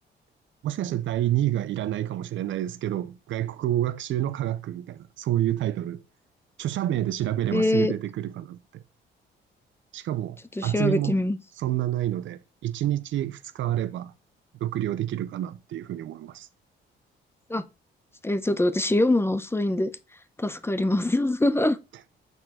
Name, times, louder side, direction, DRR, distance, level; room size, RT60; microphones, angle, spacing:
voice 1, 0.6-6.0 6.6-8.8 9.9-11.2 11.6-14.1 14.6-16.5, right 12 dB, 75° right, 0.7 m, -28 dB
voice 2, 7.5-7.9 10.6-11.4 17.5-17.6 18.2-19.9 20.4-21.8, left 1 dB, 10° left, 0.7 m, -23 dB
8.2 x 4.4 x 4.2 m
cardioid pair, 90°, 20 cm